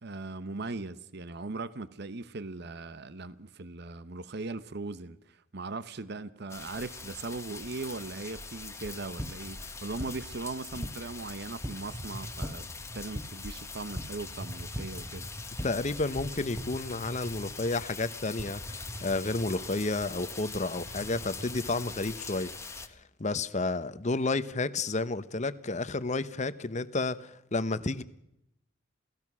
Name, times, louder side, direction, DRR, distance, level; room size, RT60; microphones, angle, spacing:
voice 1, 0.0-12.7 12.9-15.3, right 3 dB, 55° right, 0.9 m, -39 dB
sound 1, 6.5-22.9, left 4 dB, 15° left, 1.2 m, -43 dB
sound 2, 8.9-16.6, equal, 5° right, 1.8 m, -42 dB
sound 3, 11.7-13.1 13.9-14.1 14.4-15.6 16.2-17.9 18.4-19.8 20.2-20.3 20.5-21.7, right 1 dB, 40° right, 2.1 m, -44 dB
voice 2, 15.6-28.0, left 3 dB, 35° left, 0.9 m, -31 dB
28.5 x 17.5 x 6.1 m
head